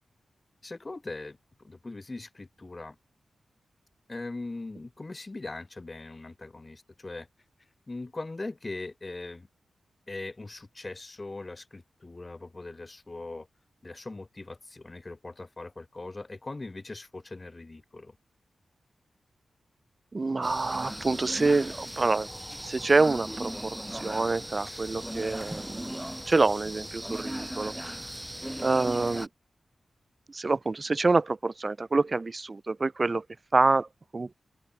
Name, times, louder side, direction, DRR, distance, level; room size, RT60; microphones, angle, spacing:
voice 1, 0.6-3.0 4.1-7.3 7.9-9.5 10.1-13.5 13.8-18.2 28.8-28.9, left 2 dB, 30° left, 1.3 m, -40 dB
voice 2, 20.1-22.3 22.6-26.0 26.3-27.9 28.6-29.3 30.3-33.2 33.5-33.9 34.1-34.3, right 3 dB, 35° right, 0.7 m, -26 dB
sound 1, 20.4-29.3, right 1 dB, 5° right, 0.9 m, -38 dB
open air
wide cardioid pair, 95°, 0 cm